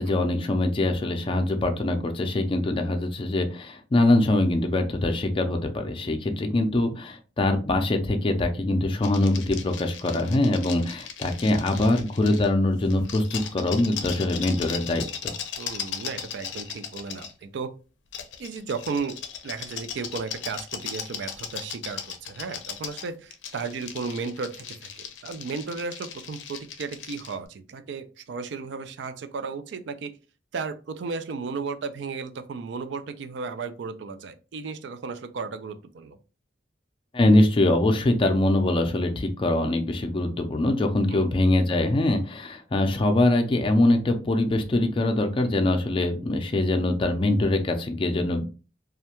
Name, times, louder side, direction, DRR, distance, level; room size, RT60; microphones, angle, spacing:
voice 1, 0.0-15.3 37.1-48.5, left 1 dB, 30° left, 4 dB, 0.4 m, -23 dB
sound 1, 9.0-12.5 12.9-17.3 18.1-27.4, left 8 dB, 90° left, 0.4 m, -37 dB
voice 2, 15.6-17.7 18.4-19.2 19.4-30.1 30.5-36.2 41.1-41.3, right 4 dB, 75° right, 10 dB, 0.4 m, -34 dB
2.4 x 2.1 x 2.9 m, 0.33 s
head